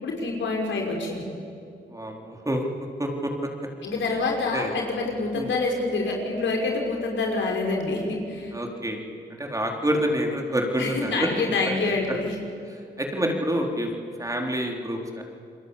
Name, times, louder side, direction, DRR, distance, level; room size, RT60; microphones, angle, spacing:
voice 1, 0.0-1.3 3.8-8.5 10.8-12.4, left 3 dB, 75° left, 0 dB, 5.7 m, -26 dB
voice 2, 1.9-2.7 3.0-3.3 4.5-4.7 5.3-5.5 8.5-9.0 9.4-11.3 13.0-13.9 14.2-15.2, equal, 15° right, 1 dB, 4.3 m, -27 dB
29.0 x 22.0 x 8.3 m, 2.4 s
cardioid pair, 60°, 19 cm